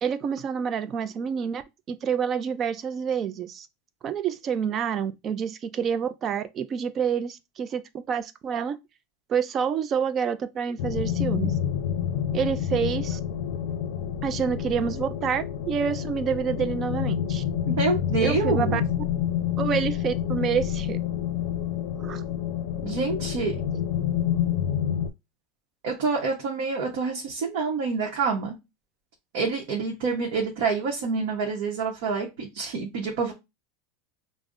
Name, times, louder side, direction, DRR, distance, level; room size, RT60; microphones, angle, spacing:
voice 1, 0.0-1.6 1.9-3.7 4.0-7.8 8.1-8.8 9.3-11.5 12.3-13.2 14.2-17.4 18.2-18.8 19.6-21.0 22.0-22.2, right 7 dB, 25° right, 0.3 m, -28 dB
sound 1, 10.8-25.1, left 10 dB, 85° left, 0.5 m, -28 dB
voice 2, 17.7-18.8 22.8-23.6 25.8-28.5 29.3-33.3, right 4 dB, 60° right, 0.9 m, -27 dB
5.0 x 2.0 x 2.5 m
supercardioid pair, 165°, 0 cm